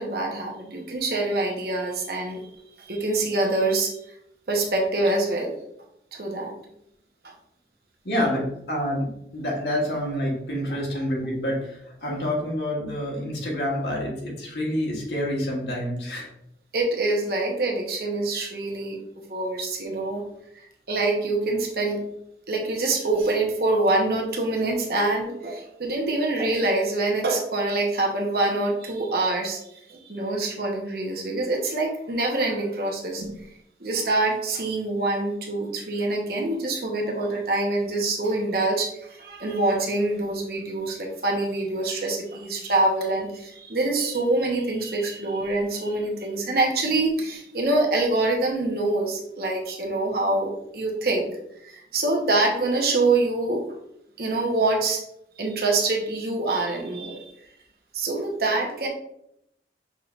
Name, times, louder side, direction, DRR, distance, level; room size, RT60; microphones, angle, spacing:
voice 1, 0.0-2.4 2.8-4.0 4.5-5.6 6.1-6.5 16.7-20.2 20.5-22.0 22.5-33.3 33.8-51.3 51.6-53.7 54.2-55.0 55.4-57.3 57.9-58.9, right 2 dB, 55° right, 0 dB, 0.9 m, -25 dB
voice 2, 8.0-9.1 9.3-16.3, equal, 70° left, -2 dB, 1.3 m, -27 dB
5.5 x 3.2 x 2.4 m, 0.77 s
head